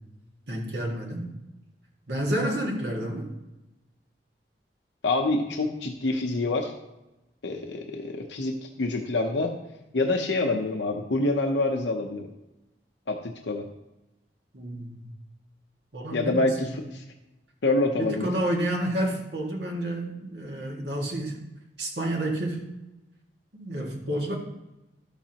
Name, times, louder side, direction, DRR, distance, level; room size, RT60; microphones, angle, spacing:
voice 1, 0.5-1.3 2.1-3.3 14.5-15.0 15.9-16.8 18.0-21.4 21.8-22.7 23.5-24.4, right 1 dB, 70° right, 0 dB, 1.9 m, -30 dB
voice 2, 5.0-6.7 7.4-9.5 9.9-12.3 13.1-13.6 16.1-17.0 17.6-18.3, left 2 dB, 90° left, 3 dB, 0.8 m, -26 dB
12.5 x 7.2 x 2.9 m, 0.98 s
head